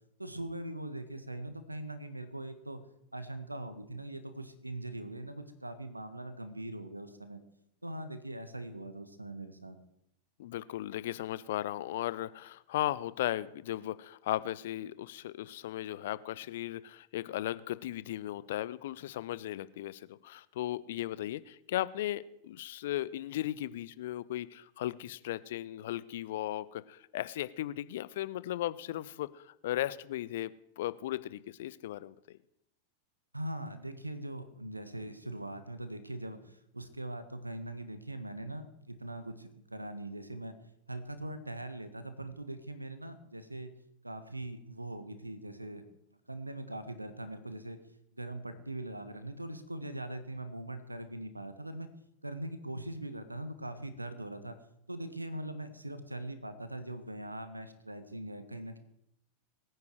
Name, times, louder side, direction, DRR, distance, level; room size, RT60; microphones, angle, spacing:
voice 1, 0.2-2.8 3.1-7.4 7.8-9.8 33.3-40.5 40.9-43.7 44.0-45.8 46.3-47.8 48.1-51.9 52.2-54.6 54.9-58.8, right 1 dB, 85° right, 11 dB, 1.5 m, -41 dB
voice 2, 10.4-32.4, left 13 dB, 55° left, 17 dB, 0.6 m, -36 dB
22.5 x 9.5 x 4.7 m, 0.79 s
figure-of-eight pair, 90°, 0 cm